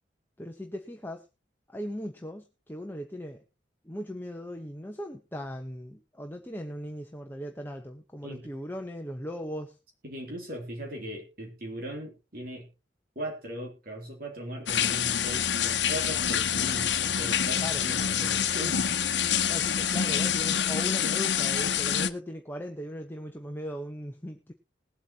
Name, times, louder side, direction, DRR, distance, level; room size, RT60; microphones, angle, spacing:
voice 1, 0.4-1.2 1.7-3.4 3.8-9.8 17.6-17.8 19.5-24.5, equal, 10° left, 3 dB, 1.0 m, -38 dB
voice 2, 10.0-12.7 13.1-18.9, right 1 dB, 55° right, 1 dB, 3.1 m, -39 dB
sound 1, 14.7-22.1, left 8 dB, 75° left, 1.0 m, -27 dB
20.5 x 8.2 x 2.9 m, 0.28 s
head